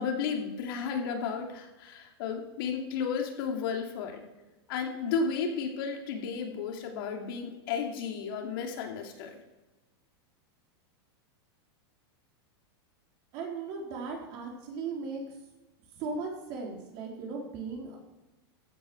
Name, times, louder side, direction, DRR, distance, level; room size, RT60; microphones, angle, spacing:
voice 1, 0.0-4.3 4.7-9.3, left 6 dB, 55° left, 2 dB, 2.6 m, -33 dB
voice 2, 13.3-15.2 16.0-18.0, right 4 dB, 40° right, 0 dB, 3.9 m, -37 dB
15.5 x 8.7 x 6.2 m, 1.1 s
supercardioid pair, 160°, 14 cm